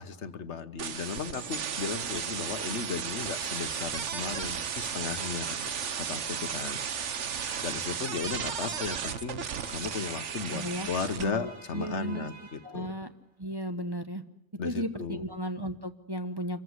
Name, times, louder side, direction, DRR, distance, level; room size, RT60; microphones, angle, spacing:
voice 1, 0.0-5.6 6.0-6.8 7.6-9.4 9.7-12.9 14.6-15.2, left 5 dB, 65° left, 11 dB, 1.4 m, -35 dB
sound 1, 0.8-11.2, right 7 dB, 65° right, 1.3 m, -34 dB
Alarm, 3.7-13.1, right 4 dB, 50° right, 2.0 m, -50 dB
voice 2, 10.5-10.9 11.2-12.3 12.6-13.1 13.4-14.2 14.6-16.6, equal, 20° right, 7 dB, 1.1 m, -35 dB
26.0 x 14.5 x 9.6 m, 0.84 s
omnidirectional pair, 1.3 m